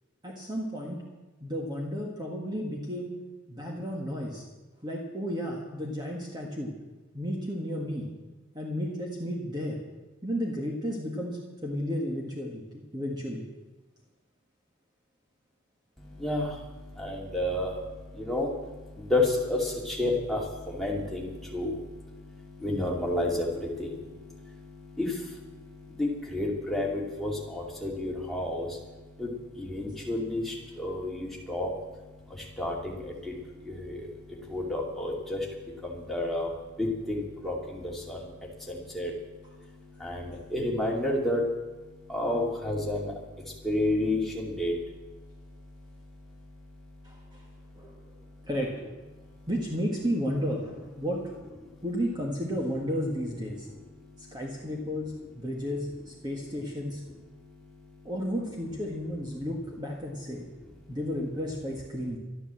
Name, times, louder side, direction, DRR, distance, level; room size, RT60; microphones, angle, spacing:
voice 1, 0.2-1.0 1.4-3.1 3.5-4.4 4.8-6.7 7.1-8.1 8.5-9.8 10.2-13.4 47.0-47.4 47.8-47.9 48.4-48.8 49.5-51.3 51.8-53.7 54.3-57.0 58.1-60.5 60.9-62.2, equal, 20° right, -1 dB, 1.7 m, -33 dB
voice 2, 16.0-48.5 49.1-49.5 51.6-51.8 53.5-54.8 57.2-58.1 60.6-61.0, left 1 dB, ahead, -3 dB, 2.6 m, -32 dB
12.5 x 11.5 x 7.7 m, 1.2 s
head